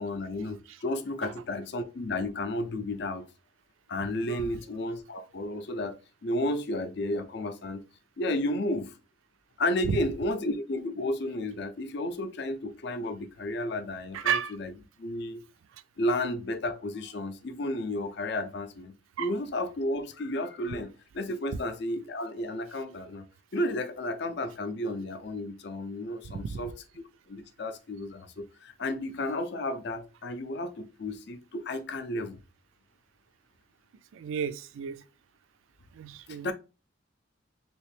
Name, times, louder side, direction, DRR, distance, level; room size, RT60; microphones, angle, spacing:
voice 1, 0.0-3.3 3.9-7.8 8.2-8.9 9.6-14.7 15.0-15.4 16.0-18.9 19.2-20.9 21.1-23.2 23.5-26.7 27.3-32.4 36.4-36.5, left 1 dB, 55° left, 0.5 m, -32 dB
voice 2, 4.3-4.6 9.8-10.0 14.1-14.5 19.2-19.3 26.5-26.7 34.1-35.0 36.0-36.5, right 7 dB, 80° right, 0.3 m, -32 dB
3.2 x 3.0 x 3.1 m
head